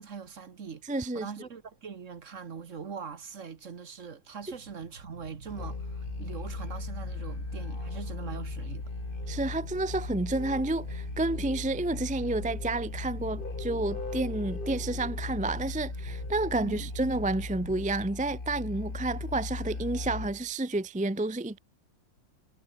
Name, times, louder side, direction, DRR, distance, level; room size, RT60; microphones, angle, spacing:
voice 1, 0.0-0.8 1.1-8.9 16.5-16.9, right 6 dB, 45° right, 1.6 m, -42 dB
voice 2, 0.9-1.3 9.3-21.6, right 2 dB, 10° right, 0.5 m, -30 dB
sound 1, 4.4-17.8, right 3 dB, 75° right, 5.5 m, -47 dB
Musical instrument, 5.5-20.5, left 3 dB, 30° left, 2.4 m, -37 dB
omnidirectional pair, 1.9 m